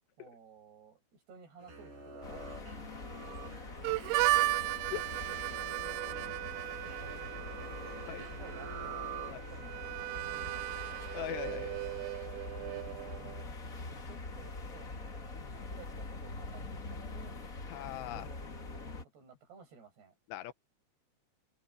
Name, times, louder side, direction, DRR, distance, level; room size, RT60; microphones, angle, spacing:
voice 1, 0.2-3.0 5.1-5.7 6.8-11.1 12.8-17.4 18.0-20.1, right 6 dB, 65° right, 9.8 m, -56 dB
sound 1, 1.6-9.8, right 4 dB, 45° right, 8.6 m, -47 dB
sound 2, 2.2-19.0, left 3 dB, 50° left, 1.0 m, -44 dB
Harmonica, 3.8-13.4, right 19 dB, 85° right, 2.2 m, -36 dB
voice 2, 11.1-11.8 15.3-15.7 17.7-18.3 20.3-20.5, left 13 dB, 80° left, 2.9 m, -40 dB
omnidirectional pair, 5.1 m